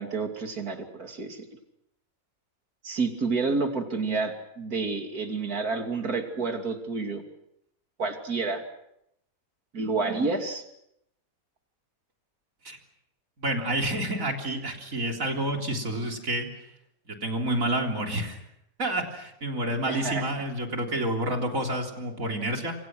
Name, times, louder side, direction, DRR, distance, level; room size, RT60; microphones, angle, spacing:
voice 1, 0.0-1.4 2.8-7.2 8.0-8.6 9.7-10.6 19.9-20.2, right 4 dB, 90° right, 4 dB, 3.3 m, -29 dB
voice 2, 13.4-16.5 17.1-18.4 18.8-22.7, right 1 dB, 65° right, 2 dB, 4.0 m, -29 dB
27.5 x 27.0 x 6.2 m, 0.79 s
omnidirectional pair, 1.5 m